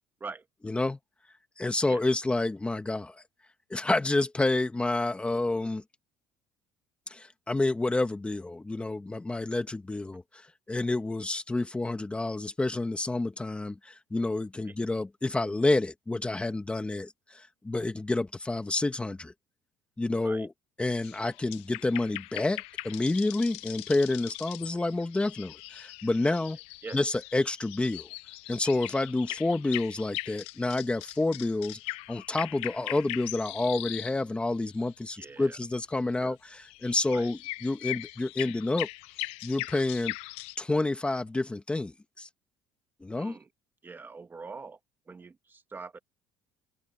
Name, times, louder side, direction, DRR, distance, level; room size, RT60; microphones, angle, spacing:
voice 1, 0.6-1.0 1.6-3.1 3.7-5.8 7.1-10.4 10.7-19.3 20.0-20.5 20.8-26.6 26.9-28.1 28.5-31.8 32.1-38.9 39.4-40.1 40.6-42.3 43.0-43.4, left 2 dB, 10° left, 1.7 m, -29 dB
sound 1, 21.0-34.2 34.6-34.9 36.7-40.6, left 19 dB, 85° left, 0.7 m, -40 dB
voice 2, 35.2-35.6 36.2-36.4 37.1-37.3 43.2-43.5 43.8-44.8 45.1-46.0, right 4 dB, 20° right, 1.6 m, -43 dB
cardioid pair, 145°, 10 cm